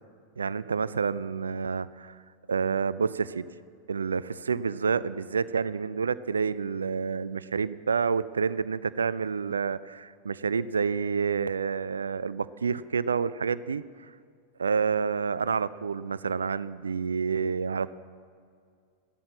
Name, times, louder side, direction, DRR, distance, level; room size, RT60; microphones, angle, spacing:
voice 1, 0.4-2.2 2.5-3.5 3.9-13.8 14.6-17.9, right 5 dB, 70° right, 17 dB, 0.4 m, -28 dB
15.0 x 13.0 x 7.4 m, 2.2 s
figure-of-eight pair, 90°, 0 cm